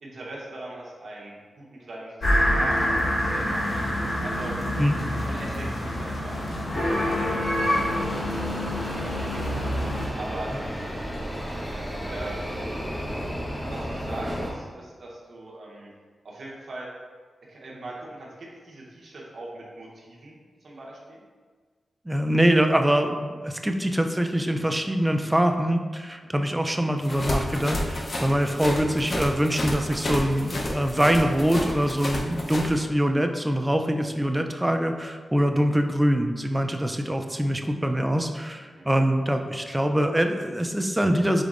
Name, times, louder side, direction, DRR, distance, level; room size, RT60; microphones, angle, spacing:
voice 1, 0.0-3.9 4.2-4.5 5.2-8.4 8.7-9.7 10.1-10.9 12.1-12.4 13.7-15.9 16.2-16.9 17.5-21.2 26.2-26.3 38.7-38.9, right 2 dB, 65° right, -4 dB, 0.9 m, -40 dB
sound 1, 2.2-10.1, left 1 dB, 60° left, 1.2 m, -26 dB
sound 2, 7.6-14.5, equal, 15° left, 1.1 m, -33 dB
voice 2, 22.1-41.4, equal, 10° right, 5 dB, 0.4 m, -24 dB
sound 3, 27.0-32.7, left 1 dB, 45° left, 0.6 m, -30 dB
5.1 x 4.0 x 2.5 m, 1.5 s
wide cardioid pair, 90°, 0 cm